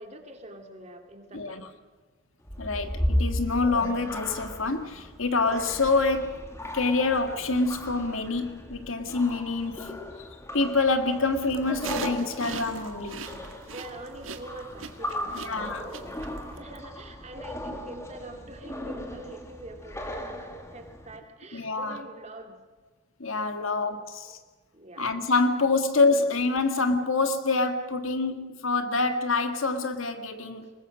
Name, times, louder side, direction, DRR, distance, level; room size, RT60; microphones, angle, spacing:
voice 1, 0.0-1.7 2.7-2.9 13.2-16.2 16.6-22.6 23.6-24.4 24.7-25.1 30.6-30.7, right 1 dB, 35° right, 2.5 m, -45 dB
sound 1, 2.4-21.2, left 1 dB, 15° left, 2.1 m, -36 dB
voice 2, 2.6-6.3 6.7-10.0 10.5-13.2 15.4-15.9 21.5-22.0 23.2-24.4 25.0-30.7, left 3 dB, 90° left, 1.9 m, -26 dB
sound 2, 11.5-16.6, right 5 dB, 85° right, 1.6 m, -39 dB
23.0 x 20.5 x 6.4 m
head